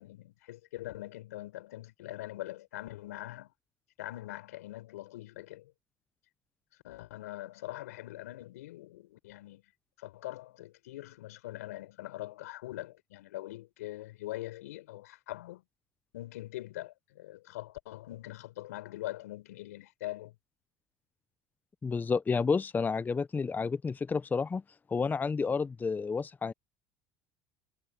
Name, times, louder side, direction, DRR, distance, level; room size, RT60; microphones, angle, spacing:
voice 1, 0.0-3.5 4.0-5.7 6.8-9.6 10.0-15.6 16.1-20.3, left 16 dB, 90° left, 6.9 m, -43 dB
voice 2, 21.8-24.6 24.9-26.5, left 5 dB, 20° left, 0.7 m, -30 dB
supercardioid pair, 85°, 8 cm